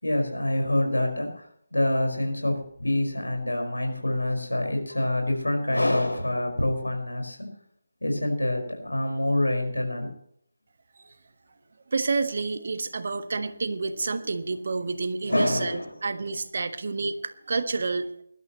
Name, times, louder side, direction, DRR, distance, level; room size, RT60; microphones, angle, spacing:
voice 1, 0.0-7.5 8.0-10.1 15.3-15.9, left 1 dB, 80° left, 3 dB, 5.1 m, -26 dB
voice 2, 11.9-18.1, right 4 dB, 50° right, 9 dB, 1.4 m, -29 dB
20.5 x 12.0 x 3.1 m, 0.68 s
figure-of-eight pair, 155°, 0 cm